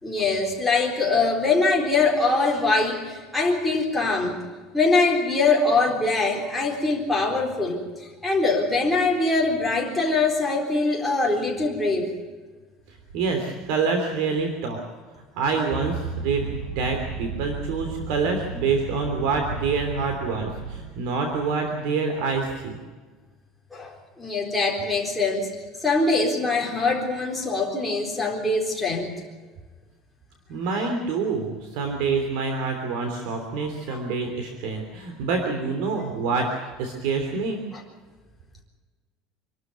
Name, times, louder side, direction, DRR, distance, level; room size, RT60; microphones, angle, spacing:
voice 1, 0.0-4.4 4.7-12.1 23.7-25.5 25.8-29.1 33.6-34.0 37.7-37.8, left 3 dB, 5° left, -2 dB, 3.9 m, -23 dB
voice 2, 13.1-14.8 15.4-22.8 30.5-36.5 36.8-37.6, right 4 dB, 65° right, 4 dB, 3.2 m, -26 dB
sound 1, 15.7-20.8, right 5 dB, 90° right, 3.9 m, -34 dB
27.0 x 12.5 x 9.3 m, 1.4 s
cardioid pair, 170°, 0 cm